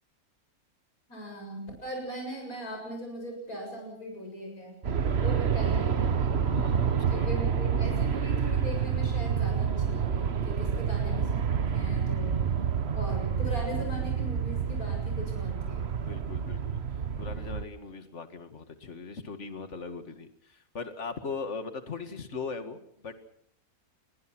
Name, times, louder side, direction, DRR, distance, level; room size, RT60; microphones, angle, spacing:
voice 1, 1.1-4.8 5.1-6.4 7.1-12.4 12.9-15.9, equal, 75° left, 1 dB, 7.7 m, -39 dB
Aircraft, 4.8-17.6, right 7 dB, 50° right, 1.3 m, -28 dB
voice 2, 6.5-7.3 16.0-16.8 17.2-23.1, left 4 dB, 50° left, 9 dB, 2.3 m, -39 dB
27.0 x 21.5 x 6.2 m, 0.66 s
omnidirectional pair, 1.6 m